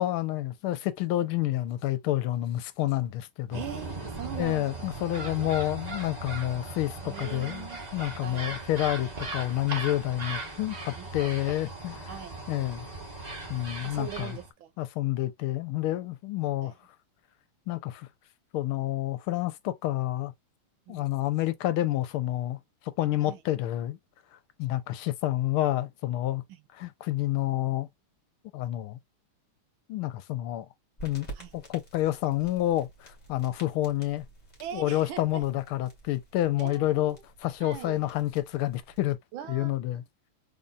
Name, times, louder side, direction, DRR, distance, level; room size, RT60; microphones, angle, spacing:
voice 1, 0.0-3.6 4.4-12.1 12.5-12.9 13.5-14.4 14.8-16.7 17.7-18.1 18.5-20.3 20.9-22.6 22.9-24.0 24.6-26.4 26.8-27.9 28.5-29.0 29.9-30.7 31.0-31.3 31.5-34.2 34.7-37.2 37.4-39.2 39.5-40.0, left 15 dB, 85° left, 1.5 m, -29 dB
sound 1, 3.5-14.5, right 2 dB, 55° right, 0.4 m, -38 dB
voice 2, 3.5-4.8 5.1-5.5 7.0-7.8 8.2-8.5 11.0-11.3 11.7-12.4 13.8-14.7 16.6-16.7 20.9-21.0 23.2-23.4 26.5-26.6 31.3-31.5 34.6-35.4 36.6-37.2 37.6-38.0 39.3-39.7, right 10 dB, 75° right, 1.5 m, -41 dB
sound 2, 31.0-39.1, right 3 dB, 20° left, 1.9 m, -50 dB
4.0 x 3.5 x 2.2 m
omnidirectional pair, 2.4 m